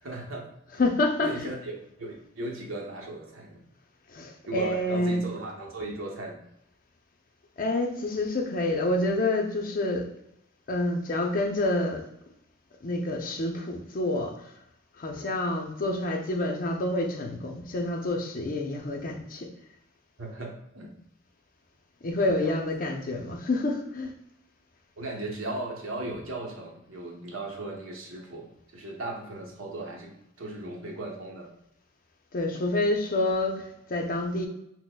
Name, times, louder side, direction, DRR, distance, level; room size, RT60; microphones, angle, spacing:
voice 1, 0.0-0.5 1.2-1.7 2.0-3.6 4.5-6.4 20.2-20.9 22.2-22.6 25.0-30.1 30.4-31.5, right 2 dB, 65° right, 0 dB, 0.9 m, -37 dB
voice 2, 0.7-1.5 4.1-5.3 7.6-10.1 10.7-12.1 12.8-14.5 15.0-19.5 22.0-24.1 32.3-34.5, left 2 dB, 40° left, 3 dB, 0.5 m, -28 dB
6.1 x 2.1 x 2.2 m, 0.80 s
head